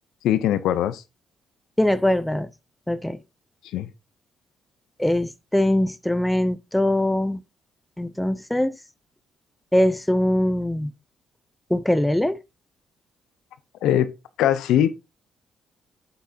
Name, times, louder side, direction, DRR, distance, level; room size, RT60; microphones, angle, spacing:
voice 1, 0.2-1.0 3.7-3.9 13.8-14.1 14.4-14.9, left 11 dB, 90° left, 0.6 m, -20 dB
voice 2, 1.8-2.5 2.9-3.2 5.0-7.4 8.0-8.7 9.7-10.9 11.7-12.4, left 1 dB, 5° left, 0.5 m, -22 dB
8.5 x 6.0 x 2.8 m
cardioid pair, 90°, 0 cm